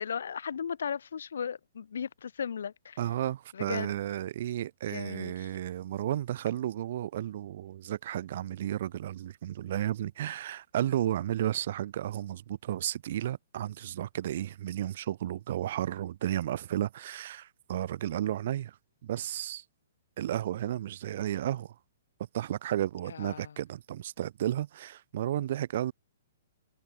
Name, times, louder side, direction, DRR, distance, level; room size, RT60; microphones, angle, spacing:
voice 1, 0.0-3.0 3.5-3.9 4.9-5.5 23.1-23.5, left 7 dB, 80° left, 2.9 m, -36 dB
voice 2, 3.0-18.8 19.0-19.6 20.2-21.7 22.3-25.9, right 12 dB, 45° right, 6.9 m, -33 dB
hypercardioid pair, 170°, 0 cm